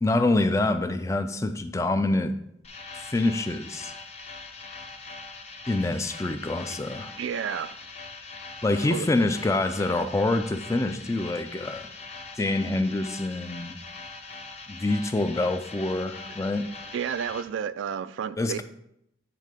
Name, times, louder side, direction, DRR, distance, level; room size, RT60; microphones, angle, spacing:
voice 1, 0.0-2.3 2.9-3.9 5.7-7.1 8.6-11.9 12.3-13.8 14.7-16.7 18.4-18.6, left 2 dB, 15° left, 0.3 m, -26 dB
sound 1, 2.6-17.4, left 3 dB, 35° left, 0.7 m, -42 dB
voice 2, 7.2-7.8 8.9-9.1 16.9-18.6, right 8 dB, 75° right, 0.3 m, -31 dB
8.5 x 3.6 x 4.9 m
head